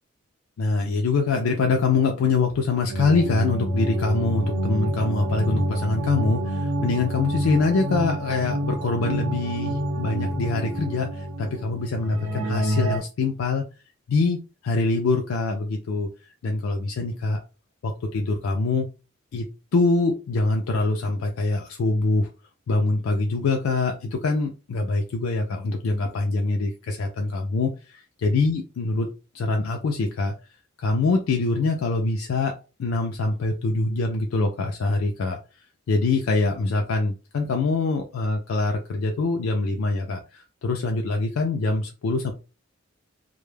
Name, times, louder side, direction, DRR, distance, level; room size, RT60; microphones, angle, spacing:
voice 1, 0.6-13.6 14.1-16.1 16.4-17.4 17.8-18.9 19.3-19.5 19.7-22.3 22.7-29.1 29.3-30.3 30.8-32.5 32.8-35.4 35.9-42.3, left 3 dB, 90° left, 3 dB, 0.4 m, -24 dB
sound 1, 2.9-13.0, equal, 85° right, 0.7 m, -27 dB
2.2 x 2.0 x 3.1 m, 0.32 s
head